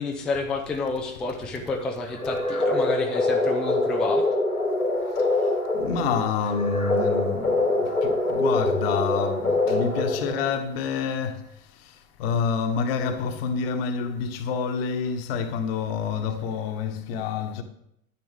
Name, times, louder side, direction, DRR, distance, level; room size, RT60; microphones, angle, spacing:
voice 1, 0.0-4.2, left 3 dB, ahead, 0.3 m, -29 dB
sound 1, 2.1-10.6, left 2 dB, 90° left, 2.2 m, -24 dB
voice 2, 5.7-11.4 11.8-17.6, left 6 dB, 45° left, 1.2 m, -28 dB
10.5 x 9.7 x 3.6 m
figure-of-eight pair, 90°, 42 cm